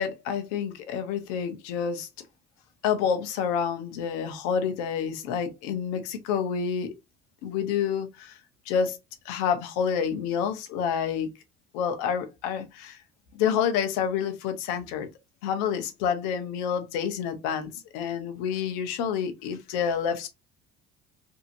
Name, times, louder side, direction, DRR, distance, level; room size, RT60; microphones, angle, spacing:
voice 1, 0.0-2.1 2.8-6.9 7.4-8.3 8.7-9.0 9.3-11.3 11.7-13.0 13.3-15.1 15.4-20.3, left 7 dB, 90° left, 0.7 m, -28 dB
2.7 x 2.6 x 2.5 m
supercardioid pair, 95°, 21 cm